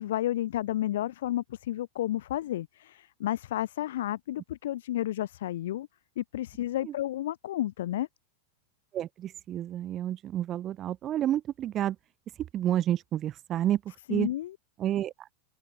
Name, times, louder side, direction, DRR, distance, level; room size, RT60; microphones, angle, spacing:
voice 1, 0.0-5.9 6.2-8.1 14.1-14.6, left 13 dB, 55° left, 7.9 m, -31 dB
voice 2, 8.9-11.9 12.5-13.8 14.1-14.3 14.8-15.1, right 11 dB, 30° right, 1.6 m, -29 dB
open air
figure-of-eight pair, 90°, 0 cm